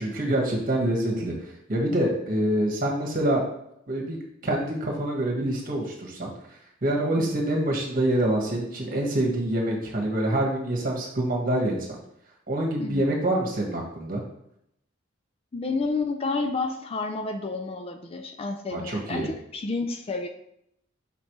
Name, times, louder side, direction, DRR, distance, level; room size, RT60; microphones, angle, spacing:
voice 1, 0.0-1.3 1.7-3.4 3.9-6.3 6.8-11.9 12.5-14.2 18.7-19.3, right 1 dB, 45° right, -1 dB, 1.4 m, -26 dB
voice 2, 15.5-20.3, left 3 dB, 30° left, 6 dB, 0.4 m, -30 dB
5.9 x 5.2 x 3.1 m, 0.77 s
head